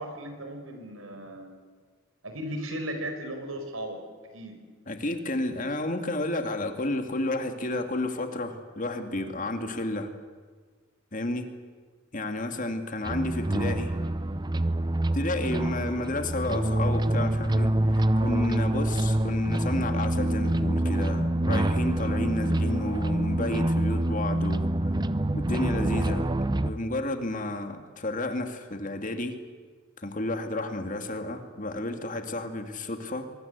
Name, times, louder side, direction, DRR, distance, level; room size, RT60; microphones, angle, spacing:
voice 1, 0.0-1.5 2.2-4.0 4.3-4.6, right 1 dB, 80° right, 5 dB, 5.1 m, -36 dB
voice 2, 4.9-10.1 11.1-11.5 12.1-13.9 15.1-25.0 25.3-26.3 26.6-29.3 30.0-33.3, left 2 dB, 40° left, 7 dB, 2.2 m, -31 dB
sound 1, 13.0-26.7, right 1 dB, 20° right, 0.7 m, -26 dB
23.5 x 23.5 x 8.1 m, 1.5 s
head